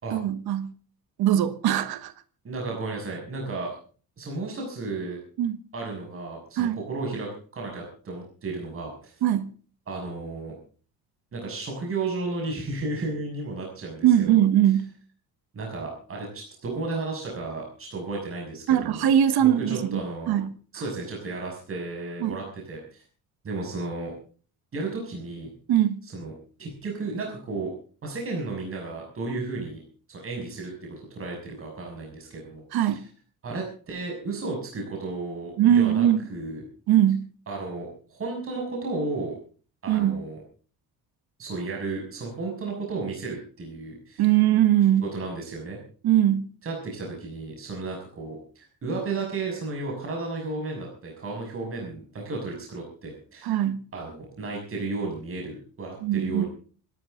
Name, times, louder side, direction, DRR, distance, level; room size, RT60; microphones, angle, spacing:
voice 1, 0.1-0.7 1.2-2.1 5.4-5.6 6.6-6.8 9.2-9.5 14.0-14.9 18.7-20.0 20.3-20.6 22.2-22.4 25.7-26.0 32.7-33.0 35.6-36.2 36.9-37.3 39.9-40.2 44.2-45.1 46.0-46.5 53.4-53.8 56.0-56.4, right 11 dB, 90° right, 1.5 m, -21 dB
voice 2, 2.4-3.7 4.2-5.2 5.7-9.2 9.9-10.5 11.3-14.4 15.5-19.1 19.4-20.4 20.7-23.0 23.4-24.1 24.7-25.5 26.1-26.3 26.6-27.7 28.0-29.8 30.1-33.0 33.4-36.6 37.5-39.3 39.8-40.4 41.4-44.2 45.0-45.8 46.6-53.6 53.9-56.5, right 3 dB, 35° right, 6.4 m, -33 dB
26.0 x 12.5 x 3.8 m
cardioid pair, 155°, 37 cm